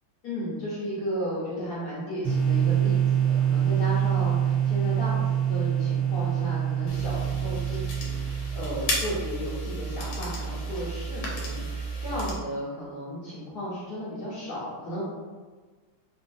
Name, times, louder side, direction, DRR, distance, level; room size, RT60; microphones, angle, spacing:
voice 1, 0.2-15.0, equal, 55° left, -9 dB, 1.5 m, -34 dB
sound 1, 2.2-9.0, right 9 dB, 25° right, 1.2 m, -25 dB
sound 2, 6.9-12.3, right 2 dB, 75° left, 1.5 m, -32 dB
4.1 x 2.7 x 2.6 m, 1.4 s
omnidirectional pair, 2.2 m